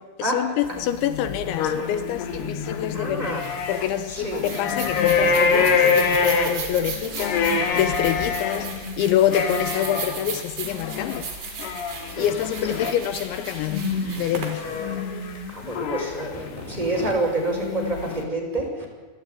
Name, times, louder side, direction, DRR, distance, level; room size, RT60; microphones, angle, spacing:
voice 1, 0.0-3.4 3.7-11.3 12.2-13.9 14.2-14.6, left 11 dB, 80° left, 3.2 m, -26 dB
sound 1, 0.7-3.9 4.2-16.8 17.4-18.2, left 5 dB, 65° left, 3.7 m, -26 dB
voice 2, 2.9-3.5 4.1-4.5 12.2-12.3 12.7-12.8 14.6-15.0 15.5-18.9, right 2 dB, 10° right, 5.3 m, -28 dB
sound 2, 3.2-15.7, right 5 dB, 55° right, 5.5 m, -37 dB
28.0 x 13.0 x 9.8 m
omnidirectional pair, 5.3 m